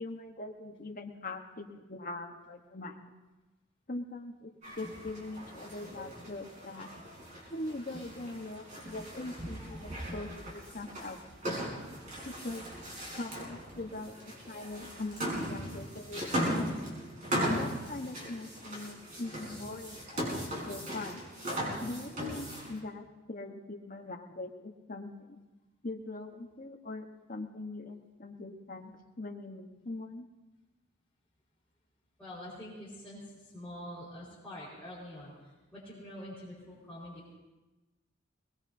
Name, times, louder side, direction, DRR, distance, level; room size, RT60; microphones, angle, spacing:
voice 1, 0.0-3.0 3.9-6.9 7.5-11.2 12.2-12.6 13.1-16.7 17.5-21.3 21.8-25.4 25.8-28.9 29.2-30.3, left 2 dB, 45° left, 2 dB, 1.3 m, -42 dB
sound 1, 4.6-22.8, equal, 40° right, 4.8 m, -38 dB
voice 2, 32.2-37.3, left 1 dB, 5° left, -13 dB, 4.9 m, -46 dB
23.0 x 20.0 x 2.8 m, 1.1 s
head